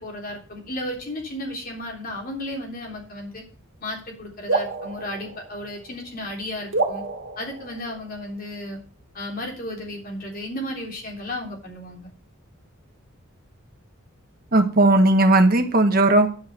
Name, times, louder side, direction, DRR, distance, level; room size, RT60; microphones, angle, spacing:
voice 1, 0.0-3.4 3.8-7.0 7.4-8.8 9.1-12.1, left 1 dB, 45° left, 0 dB, 3.5 m, -34 dB
sound 1, 4.5-6.1 6.7-8.4, right 3 dB, 75° right, 2.0 m, -29 dB
voice 2, 14.5-16.3, right 2 dB, 45° right, 6 dB, 1.5 m, -17 dB
10.5 x 5.7 x 6.6 m, 0.40 s
head